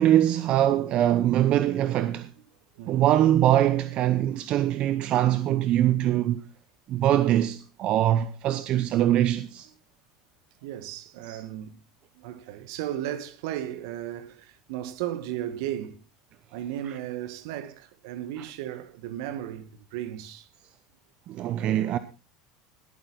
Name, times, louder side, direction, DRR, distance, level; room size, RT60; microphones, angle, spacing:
voice 1, 0.0-2.3 2.9-6.4 6.9-9.7 11.3-11.4 16.9-17.0 18.4-18.5 21.3-22.0, right 12 dB, 50° right, 0.9 m, -23 dB
voice 2, 2.7-3.1 10.6-11.8 12.2-16.0 16.5-20.5, right 12 dB, 65° right, 1.6 m, -35 dB
19.5 x 8.8 x 4.2 m
hypercardioid pair, 75°, 2 cm